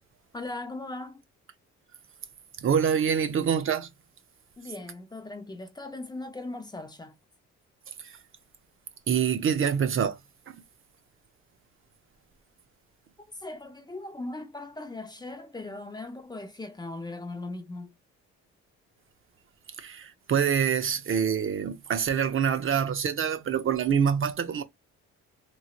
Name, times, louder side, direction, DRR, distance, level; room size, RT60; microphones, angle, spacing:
voice 1, 0.3-1.2 4.6-7.1 13.4-17.9, left 2 dB, 15° left, 0.6 m, -39 dB
voice 2, 2.6-3.9 8.0-8.1 9.1-10.2 10.5-10.6 19.8-24.6, right 7 dB, 45° right, 0.5 m, -26 dB
3.1 x 2.7 x 2.4 m
cardioid pair, 90°, 30 cm